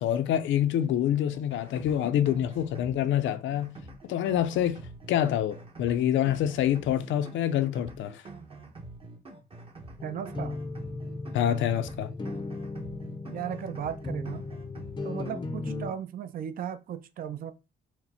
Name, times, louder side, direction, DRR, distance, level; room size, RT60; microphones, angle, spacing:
voice 1, 0.0-3.7 4.0-4.8 5.1-8.2 11.3-12.1, left 10 dB, 75° left, 0.5 m, -26 dB
sound 1, 1.3-15.5, right 2 dB, 30° right, 0.8 m, -47 dB
sound 2, 10.0-15.9, left 2 dB, 25° left, 0.5 m, -36 dB
voice 2, 10.0-10.6 13.3-14.4 15.0-17.5, right 9 dB, 45° right, 0.4 m, -36 dB
4.3 x 2.0 x 4.1 m
cardioid pair, 90°, 20 cm